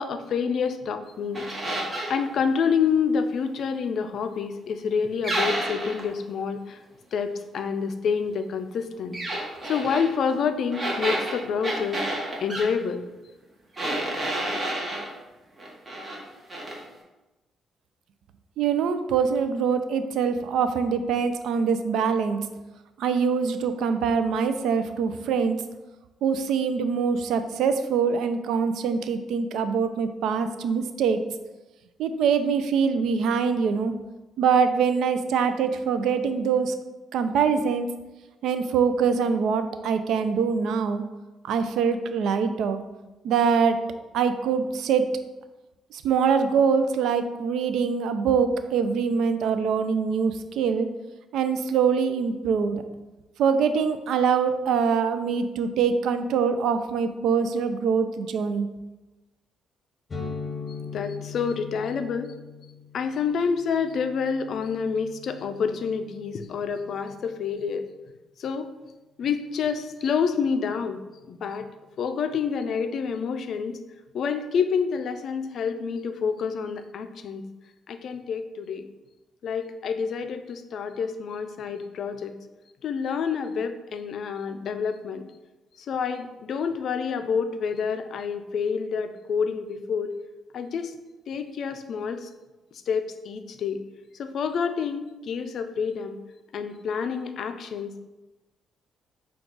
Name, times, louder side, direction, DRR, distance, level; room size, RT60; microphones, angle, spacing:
voice 1, 0.0-1.4 2.1-6.8 7.1-9.2 9.6-12.0 12.4-13.0 60.9-62.3 62.9-67.9 68.4-68.7 69.2-71.7 72.0-73.8 74.1-77.4 77.9-78.9 79.4-82.3 82.8-85.3 85.9-90.1 90.5-90.9 91.3-92.3 92.9-93.8 94.2-96.2 96.5-98.0, left 6 dB, 65° left, 9 dB, 0.4 m, -28 dB
sound 1, 1.3-2.2 5.2-6.1 9.1-10.1 10.7-12.7 13.8-15.1 15.6-16.2 16.5-16.8, right 1 dB, 30° right, 1.2 m, -29 dB
voice 2, 18.6-22.4 23.0-25.6 26.2-31.2 32.0-33.9 34.4-36.7 37.1-37.9 38.4-41.0 41.4-42.8 43.2-43.8 44.1-45.1 45.9-50.9 51.3-52.8 53.4-58.7, right 6 dB, 80° right, 9 dB, 0.4 m, -24 dB
sound 2, 60.1-67.7, left 5 dB, 35° left, 0.8 m, -41 dB
6.0 x 2.3 x 3.8 m, 1.1 s
cardioid pair, 90°, 0 cm